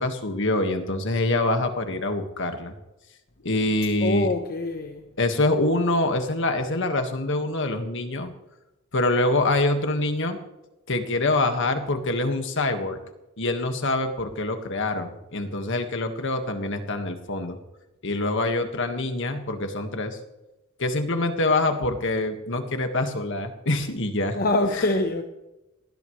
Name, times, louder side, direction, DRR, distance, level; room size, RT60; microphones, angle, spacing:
voice 1, 0.0-2.7 3.4-4.3 5.2-8.3 8.9-10.4 10.9-13.0 13.4-17.6 18.0-20.2 20.8-24.4, left 2 dB, 65° left, 1.8 m, -25 dB
voice 2, 4.0-5.0 24.3-25.2, left 2 dB, 45° left, 1.1 m, -24 dB
20.0 x 17.5 x 3.3 m
head